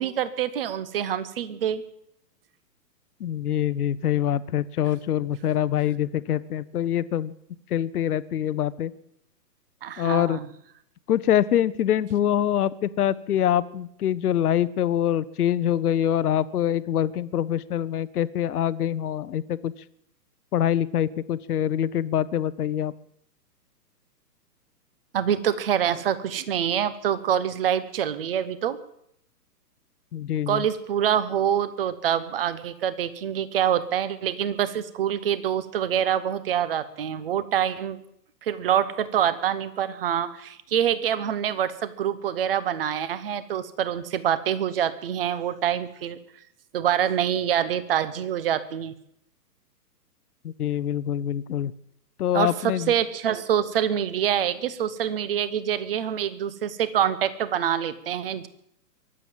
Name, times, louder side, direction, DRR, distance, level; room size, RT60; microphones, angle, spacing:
voice 1, 0.0-1.8 9.8-10.5 25.1-28.8 30.5-38.0 38.4-46.2 46.7-48.9 52.3-58.5, right 9 dB, 35° right, 16 dB, 1.0 m, -26 dB
voice 2, 3.2-7.3 7.7-8.9 10.0-10.4 11.1-19.7 20.5-22.9 30.1-30.6 50.4-51.7 52.2-52.9, left 10 dB, 65° left, 17 dB, 0.9 m, -25 dB
23.0 x 8.0 x 7.3 m, 0.74 s
hypercardioid pair, 160°, 49 cm